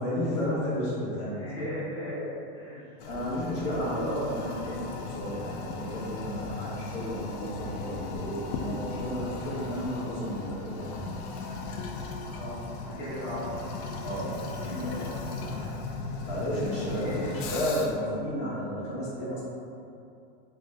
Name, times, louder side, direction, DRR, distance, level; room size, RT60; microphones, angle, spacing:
voice 1, 0.0-1.4 3.1-4.4 5.0-11.2 14.0-14.4 14.8-14.9 15.4-15.8 16.2-19.4, equal, 60° left, -8 dB, 1.3 m, -32 dB
voice 2, 1.3-2.8 3.5-4.9 12.3-13.6 14.6-15.1 16.9-17.3, equal, 15° left, -12 dB, 0.4 m, -36 dB
Toilet flush, 3.0-18.1, left 3 dB, 90° left, 0.5 m, -37 dB
3.1 x 2.1 x 3.4 m, 2.5 s
supercardioid pair, 165°, 42 cm